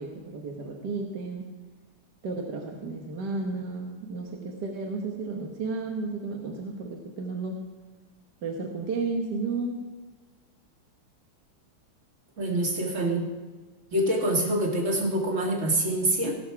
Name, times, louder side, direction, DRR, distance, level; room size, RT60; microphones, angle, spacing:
voice 1, 0.0-1.4 2.2-7.6 8.4-9.8, right 3 dB, 60° right, 1 dB, 1.7 m, -33 dB
voice 2, 12.4-13.3 13.9-16.3, right 1 dB, 40° right, -1 dB, 2.3 m, -25 dB
17.0 x 6.7 x 5.9 m, 1.3 s
omnidirectional pair, 2.2 m